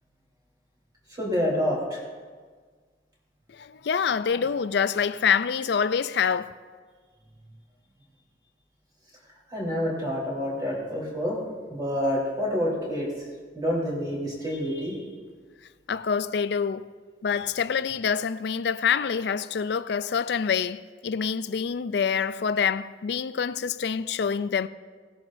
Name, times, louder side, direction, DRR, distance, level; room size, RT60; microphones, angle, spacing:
voice 1, 1.2-2.0 9.5-11.4 11.7-13.1 13.5-15.0, equal, 20° right, 3.7 m, -27 dB
voice 2, 3.5-6.5 15.9-16.9 17.2-24.7, left 6 dB, 60° left, 0.4 m, -26 dB
18.5 x 10.5 x 2.6 m
head